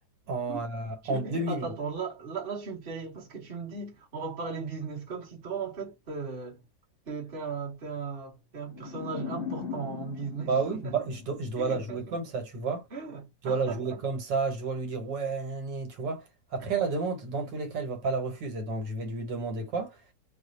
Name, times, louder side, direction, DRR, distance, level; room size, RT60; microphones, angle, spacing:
voice 1, 0.3-1.7 10.5-12.9 13.4-20.0, right 4 dB, 80° right, 1.6 m, -31 dB
voice 2, 1.0-6.6 7.1-10.9 11.6-12.2 12.9-14.0 16.6-16.7, right 5 dB, 35° right, 1.1 m, -37 dB
sound 1, 8.7-11.9, left 7 dB, 55° left, 0.7 m, -39 dB
3.2 x 2.0 x 3.8 m
omnidirectional pair, 1.9 m